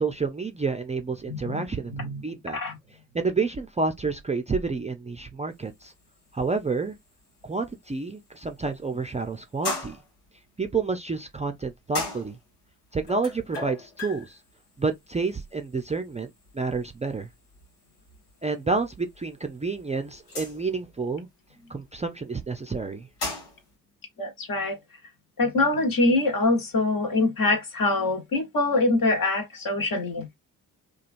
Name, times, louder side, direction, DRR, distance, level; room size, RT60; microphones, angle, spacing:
voice 1, 0.0-2.6 3.1-5.9 6.3-7.0 7.4-10.0 10.6-12.4 12.9-14.4 14.8-17.3 18.4-21.3 21.7-23.1, right 4 dB, 15° right, 0.5 m, -29 dB
voice 2, 1.3-1.6 1.9-2.2 2.5-2.7 24.2-24.8 25.4-30.3, left 2 dB, 50° left, 1.3 m, -24 dB
sound 1, 5.5-23.7, left 3 dB, 85° left, 1.1 m, -41 dB
2.9 x 2.4 x 2.5 m
hypercardioid pair, 45°, 44 cm